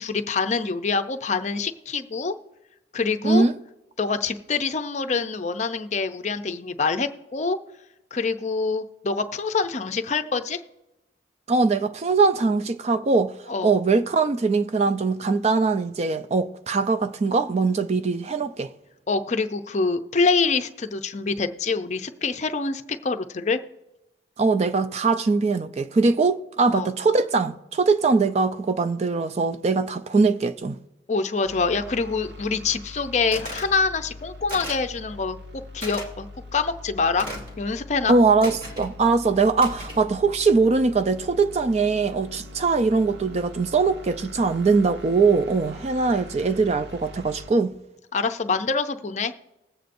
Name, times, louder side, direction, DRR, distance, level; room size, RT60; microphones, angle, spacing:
voice 1, 0.0-2.3 2.9-3.4 4.0-7.6 8.1-10.6 13.5-13.7 19.1-23.6 26.7-26.9 31.1-36.3 36.5-37.3 37.6-38.1 48.1-49.3, left 4 dB, 40° left, 0.6 m, -25 dB
voice 2, 3.2-3.6 11.5-13.3 13.6-18.7 24.4-30.8 38.1-47.7, right 4 dB, 35° right, 0.4 m, -21 dB
sound 1, 31.5-47.5, left 2 dB, 70° right, 1.1 m, -42 dB
sound 2, 33.3-33.7 34.5-34.9 35.8-36.1 37.2-37.6 38.4-38.9 39.6-40.1, equal, 50° right, 2.4 m, -35 dB
20.5 x 8.0 x 2.6 m
head